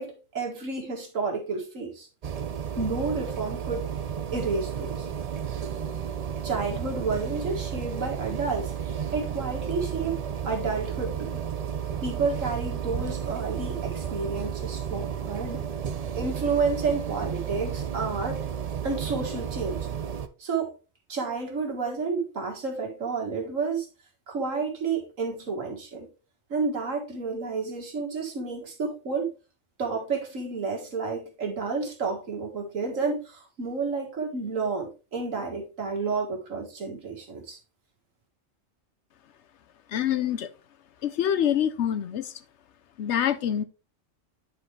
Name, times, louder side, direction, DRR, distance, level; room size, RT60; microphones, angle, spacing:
voice 1, 0.0-2.1 2.8-3.9 4.3-5.1 6.4-11.4 12.0-15.7 16.1-18.5 18.8-19.9 20.4-20.7 21.1-23.9 24.3-26.1 26.5-29.3 29.8-37.6, right 4 dB, 85° right, 2.1 m, -30 dB
sound 1, 2.2-20.3, right 8 dB, 55° right, 0.4 m, -32 dB
voice 2, 39.9-40.5 41.0-42.3 43.0-43.6, left 9 dB, 65° left, 0.9 m, -26 dB
10.0 x 4.2 x 3.2 m
omnidirectional pair, 1.3 m